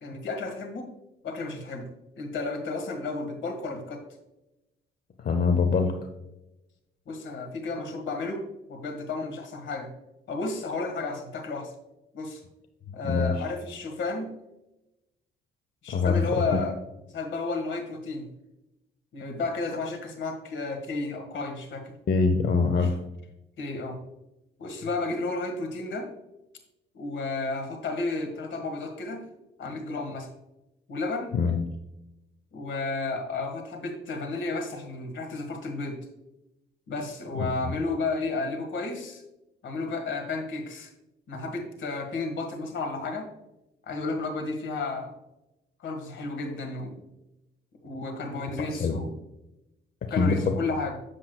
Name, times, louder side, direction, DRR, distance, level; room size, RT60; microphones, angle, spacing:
voice 1, 0.0-0.9 1.2-1.9 2.2-4.0 7.1-8.4 8.7-9.9 10.3-11.7 12.1-12.4 12.9-14.3 15.8-16.8 17.1-18.3 19.1-22.0 22.8-22.9 23.6-24.0 24.6-26.1 26.9-29.2 29.6-30.3 30.9-31.3 32.5-36.0 36.9-39.2 39.6-40.9 41.3-43.3 43.9-45.1 45.8-47.0 47.8-49.1 50.1-51.0, left 3 dB, 70° left, 4 dB, 1.7 m, -32 dB
voice 2, 5.2-5.9 13.0-13.4 15.9-16.6 22.1-23.0 31.3-31.6 37.3-37.7 48.7-49.0 50.2-50.6, left 4 dB, 50° left, 5 dB, 0.8 m, -24 dB
7.9 x 7.2 x 2.3 m, 0.93 s
cardioid pair, 90°, 20 cm